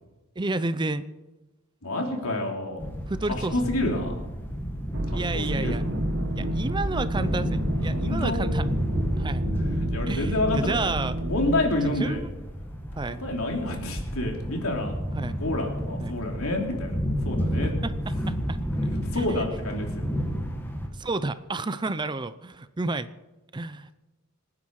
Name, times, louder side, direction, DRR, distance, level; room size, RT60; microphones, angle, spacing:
voice 1, 0.4-1.0 3.1-3.7 5.1-5.8 6.4-8.6 9.2-9.4 10.1-11.2 11.8-12.3 13.0-13.2 15.1-15.4 16.0-16.2 17.6-17.9 18.3-18.6 19.1-19.4 20.9-23.1 23.5-23.9, right 3 dB, 20° right, 13 dB, 0.5 m, -31 dB
voice 2, 1.8-2.9 3.5-4.2 5.1-5.9 7.9-8.4 9.9-10.9 11.2-12.2 13.2-14.9 15.4-17.7 19.1-20.1, left 1 dB, 75° left, 1 dB, 3.4 m, -28 dB
sound 1, 2.8-20.9, equal, 10° left, 1.8 m, -31 dB
sound 2, 4.9-11.6, right 1 dB, 55° right, 1.2 m, -30 dB
26.0 x 9.8 x 4.8 m, 1.1 s
head